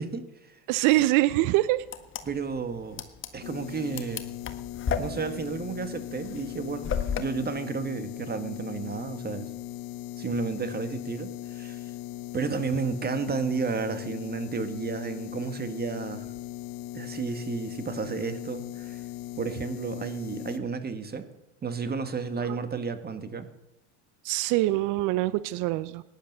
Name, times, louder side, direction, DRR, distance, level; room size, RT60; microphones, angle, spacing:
voice 1, 0.0-0.6 2.2-3.0 3.3-4.2 5.0-9.5 10.2-11.9 12.3-16.3 16.9-19.0 19.4-21.3 21.6-23.5, right 5 dB, 25° right, 10 dB, 1.9 m, -32 dB
voice 2, 0.7-1.8 24.2-26.0, right 17 dB, 60° right, 17 dB, 0.7 m, -24 dB
sound 1, 1.8-7.2, left 6 dB, 35° left, 1.6 m, -34 dB
sound 2, 3.4-20.6, left 14 dB, 65° left, 1.1 m, -39 dB
17.5 x 10.5 x 6.8 m, 1.0 s
supercardioid pair, 95°, 36 cm